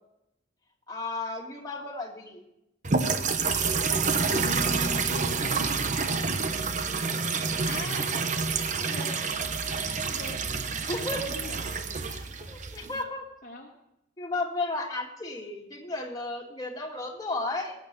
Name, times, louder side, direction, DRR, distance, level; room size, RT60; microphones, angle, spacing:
voice 1, 0.9-2.4 10.8-11.3 12.5-13.2 14.2-17.8, left 2 dB, 20° left, -1 dB, 2.2 m, -33 dB
sound 1, 2.8-13.0, right 4 dB, 40° right, 0.9 m, -28 dB
voice 2, 4.3-5.9 7.6-8.1 8.7-9.2 9.8-10.4 11.2-11.6 12.1-12.3 13.4-13.7, left 2 dB, 45° left, 0 dB, 1.5 m, -40 dB
20.5 x 8.9 x 5.4 m, 0.84 s
head